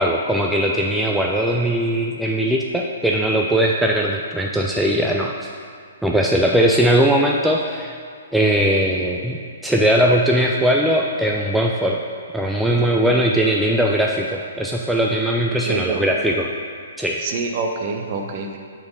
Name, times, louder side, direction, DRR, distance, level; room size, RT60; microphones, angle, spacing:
voice 1, 0.0-5.5 6.0-8.0 8.3-12.0 12.3-16.5 17.0-17.2, right 1 dB, ahead, -1 dB, 0.3 m, -19 dB
voice 2, 15.7-16.0 17.2-18.6, right 4 dB, 40° right, 3 dB, 0.7 m, -26 dB
4.8 x 4.1 x 5.4 m, 2.2 s
figure-of-eight pair, 120°, 0 cm